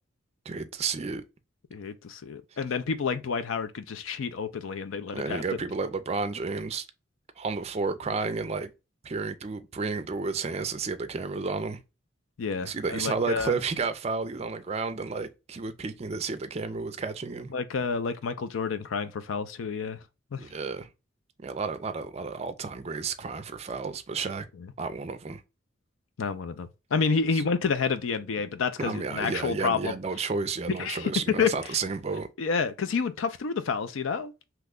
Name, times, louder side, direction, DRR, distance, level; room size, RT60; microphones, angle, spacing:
voice 1, 0.5-1.2 5.1-6.9 7.4-8.7 9.0-11.8 12.6-17.5 20.4-20.9 21.4-24.4 24.8-25.4 27.3-27.4 28.8-32.3, right 4 dB, 30° right, 0.4 m, -31 dB
voice 2, 1.7-5.4 12.4-13.5 17.5-20.0 20.3-20.5 24.6-24.7 26.2-30.0 30.8-31.5 32.4-34.3, left 5 dB, 85° left, 0.5 m, -29 dB
3.0 x 2.2 x 3.5 m
head